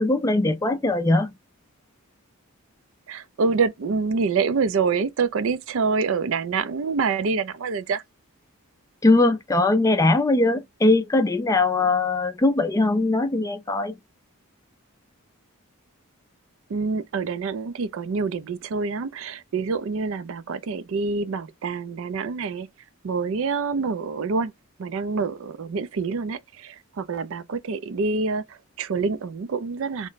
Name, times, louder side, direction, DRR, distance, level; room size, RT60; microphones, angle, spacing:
voice 1, 0.0-1.3 9.0-13.9, left 2 dB, 15° left, 0.3 m, -20 dB
voice 2, 3.1-8.0 16.7-22.7 23.0-24.5 24.8-30.1, right 4 dB, 60° right, 0.4 m, -26 dB
3.1 x 2.1 x 3.9 m
head